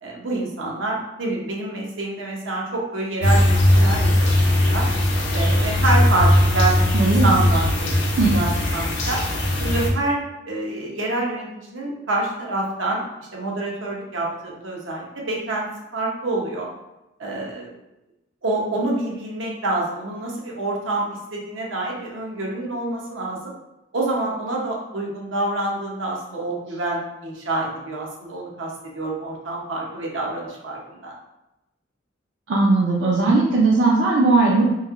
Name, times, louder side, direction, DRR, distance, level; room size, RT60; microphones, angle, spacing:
voice 1, 0.0-4.9 5.3-9.2 9.5-13.0 13.3-15.7 15.9-16.7 17.2-17.7 18.4-23.5 23.9-31.1, right 2 dB, 85° right, -2 dB, 0.8 m, -27 dB
sound 1, 3.2-9.9, left 1 dB, 70° left, 0.6 m, -19 dB
voice 2, 6.9-7.4 8.2-8.3 32.5-34.6, right 3 dB, 65° right, -3 dB, 0.4 m, -18 dB
3.1 x 2.7 x 2.5 m, 0.94 s
head